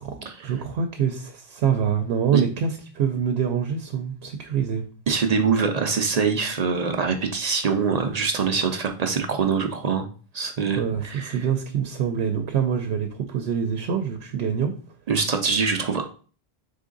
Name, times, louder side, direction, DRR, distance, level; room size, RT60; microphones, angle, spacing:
voice 1, 0.4-4.8 10.8-14.7, right 7 dB, 90° right, 5 dB, 0.8 m, -25 dB
voice 2, 5.1-10.1 10.3-11.4 15.1-16.0, right 5 dB, 50° right, 5 dB, 0.5 m, -24 dB
3.6 x 3.6 x 3.8 m, 0.40 s
omnidirectional pair, 1.0 m